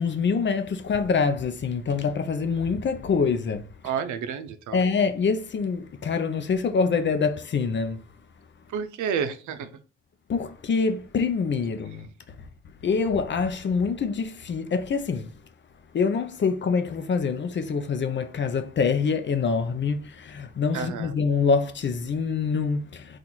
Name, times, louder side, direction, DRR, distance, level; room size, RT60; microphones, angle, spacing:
voice 1, 0.0-3.7 4.7-8.0 10.3-12.1 12.8-15.3 15.9-23.2, left 5 dB, 40° left, 0.6 m, -25 dB
voice 2, 3.8-4.8 8.7-9.7 20.7-21.1, right 7 dB, 75° right, 0.6 m, -30 dB
3.9 x 2.5 x 4.4 m
cardioid pair, 90°, 30 cm